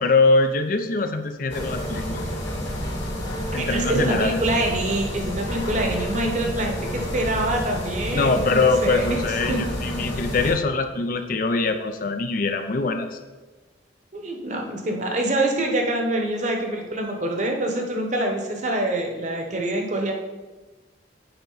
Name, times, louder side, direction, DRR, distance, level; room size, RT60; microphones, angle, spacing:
voice 1, 0.0-2.2 3.5-4.4 8.1-13.2, left 3 dB, 45° left, 7 dB, 0.4 m, -23 dB
sound 1, 1.5-10.5, equal, 75° left, 2.2 m, -29 dB
voice 2, 3.6-9.6 14.1-20.1, right 1 dB, 40° right, 2 dB, 1.0 m, -25 dB
8.0 x 4.9 x 4.0 m, 1.2 s
head